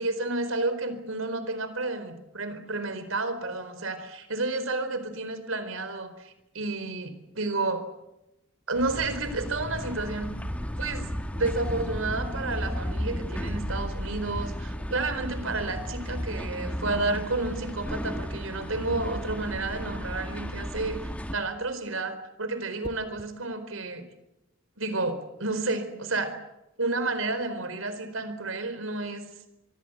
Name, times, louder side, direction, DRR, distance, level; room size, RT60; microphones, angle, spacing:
voice 1, 0.0-7.8 8.7-10.3 10.8-11.1 11.3-21.0 21.3-24.0 24.8-26.3 26.8-29.2, right 2 dB, 75° right, 11 dB, 4.4 m, -31 dB
sound 1, 8.7-21.3, equal, 5° left, 1.8 m, -34 dB
sound 2, 22.8-23.4 25.3-25.6, left 1 dB, 25° left, 1.7 m, -45 dB
25.5 x 23.5 x 8.2 m, 0.91 s
head